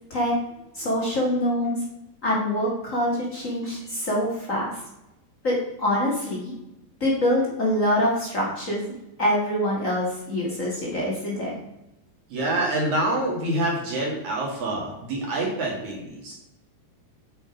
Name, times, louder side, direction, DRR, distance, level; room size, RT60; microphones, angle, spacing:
voice 1, 0.7-1.8 2.2-4.7 5.4-6.5 7.0-8.9 9.2-11.5, left 1 dB, 45° left, -4 dB, 1.0 m, -25 dB
voice 2, 12.3-16.3, right 1 dB, 55° right, -2 dB, 2.7 m, -26 dB
9.3 x 5.1 x 5.2 m, 0.90 s
omnidirectional pair, 4.9 m